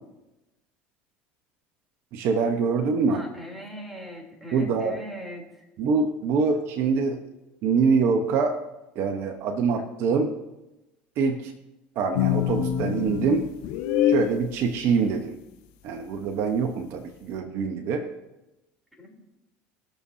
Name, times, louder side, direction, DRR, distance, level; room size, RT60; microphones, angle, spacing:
voice 1, 2.1-3.3 4.5-5.0 5.8-7.2 7.6-8.6 9.0-10.3 11.2-11.5 12.0-13.5 14.1-15.4 15.8-18.1, right 5 dB, 60° right, 6 dB, 1.1 m, -24 dB
voice 2, 3.1-5.6 19.0-19.2, equal, 5° right, 0 dB, 3.3 m, -40 dB
sound 1, 12.1-14.4, left 10 dB, 75° left, 1.1 m, -24 dB
20.0 x 7.0 x 2.8 m, 0.98 s
supercardioid pair, 90°, 5 cm